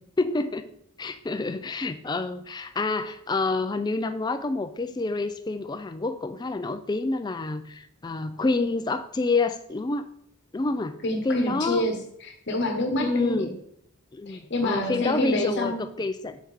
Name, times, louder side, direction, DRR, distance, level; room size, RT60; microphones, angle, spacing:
voice 1, 0.2-0.7 1.0-10.1 10.5-11.0 11.2-11.9 13.0-13.5 14.1-16.4, left 3 dB, 20° left, 10 dB, 0.3 m, -28 dB
voice 2, 11.0-13.5 14.3-15.8, left 1 dB, 50° left, 4 dB, 1.1 m, -27 dB
5.7 x 4.5 x 4.7 m, 0.72 s
head